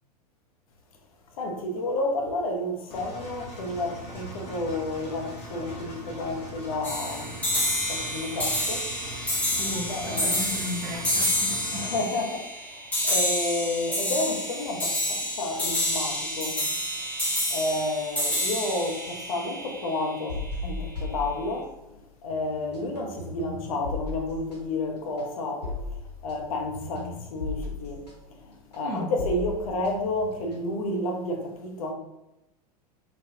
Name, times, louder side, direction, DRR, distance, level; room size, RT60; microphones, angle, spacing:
voice 1, 1.3-7.4 7.9-8.9 9.9-10.4 11.7-16.6 17.0-17.1 17.5-21.8 22.2-25.7 26.2-31.9, left 2 dB, 60° left, 0.7 m, -31 dB
Engine, 2.9-12.0, equal, 30° left, 0.8 m, -40 dB
sound 1, 6.8-20.3, equal, 5° left, 1.0 m, -29 dB
voice 2, 9.6-11.8 28.8-29.1, left 1 dB, 40° right, 0.9 m, -35 dB
sound 2, 20.3-22.0 22.3-31.0, left 2 dB, 80° left, 1.1 m, -37 dB
4.0 x 2.2 x 2.7 m
figure-of-eight pair, 90°, 21 cm